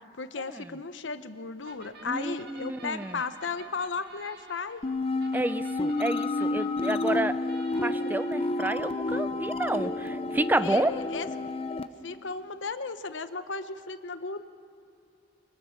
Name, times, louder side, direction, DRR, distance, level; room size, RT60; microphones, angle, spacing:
voice 1, 0.2-4.8 10.6-11.3 12.0-14.4, left 4 dB, 75° left, 11 dB, 0.9 m, -35 dB
sound 1, 1.6-12.0, right 2 dB, 55° right, 1.8 m, -52 dB
voice 2, 2.0-3.2 5.3-7.4 7.8-11.0, right 1 dB, 10° right, 14 dB, 0.5 m, -30 dB
sound 2, 4.8-11.9, left 2 dB, 30° left, 0.7 m, -30 dB
24.0 x 21.0 x 5.8 m, 2.7 s
head